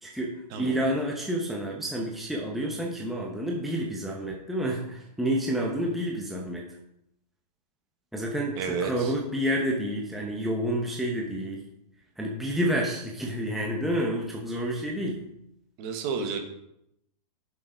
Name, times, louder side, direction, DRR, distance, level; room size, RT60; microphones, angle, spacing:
voice 1, 0.0-6.8 8.1-11.6 12.2-15.2, equal, ahead, -2 dB, 0.9 m, -29 dB
voice 2, 8.6-9.1 15.8-16.4, right 5 dB, 35° right, 5 dB, 1.5 m, -31 dB
7.2 x 6.8 x 5.0 m, 0.79 s
hypercardioid pair, 155°, 21 cm